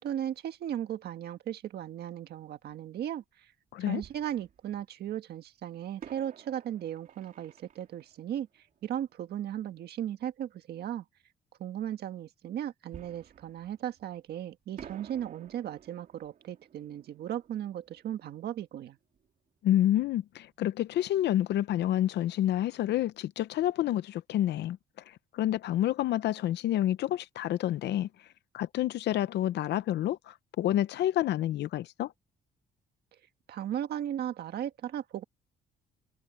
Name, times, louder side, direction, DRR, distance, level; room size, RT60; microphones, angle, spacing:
voice 1, 0.0-3.2 3.9-8.5 8.8-11.0 11.6-19.0 33.5-35.2, right 10 dB, 65° right, 1.5 m, -36 dB
voice 2, 3.7-4.0 19.6-24.8 25.1-28.3 28.5-32.1, left 12 dB, 70° left, 0.6 m, -29 dB
Fireworks, 4.0-5.1 6.0-9.5 12.9-14.4 14.8-19.3 19.6-19.7 20.2-20.4, right 8 dB, 50° right, 2.5 m, -53 dB
cardioid pair, 160°, 18 cm